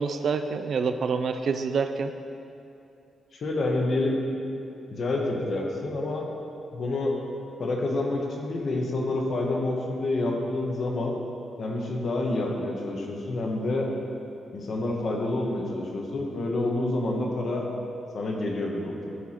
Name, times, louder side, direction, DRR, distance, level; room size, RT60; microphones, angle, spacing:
voice 1, 0.0-2.1, right 5 dB, 45° right, 8 dB, 0.3 m, -27 dB
voice 2, 3.3-4.2 4.9-6.3 6.7-7.1 7.6-11.1 11.6-13.9 14.5-17.7 18.1-19.2, left 2 dB, 40° left, 0 dB, 1.1 m, -28 dB
12.5 x 4.7 x 4.4 m, 2.7 s
wide cardioid pair, 175°, 0 cm